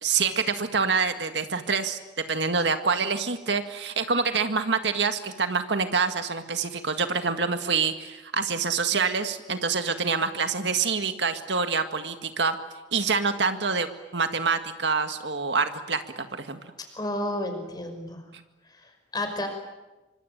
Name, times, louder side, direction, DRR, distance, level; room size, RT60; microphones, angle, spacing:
voice 1, 0.0-2.0 2.3-12.6 12.9-13.9 14.1-16.6, right 5 dB, 75° right, 8 dB, 1.9 m, -26 dB
voice 2, 16.8-18.2 18.7-19.5, left 1 dB, 25° left, 5 dB, 5.7 m, -32 dB
26.0 x 24.5 x 9.2 m, 1.1 s
head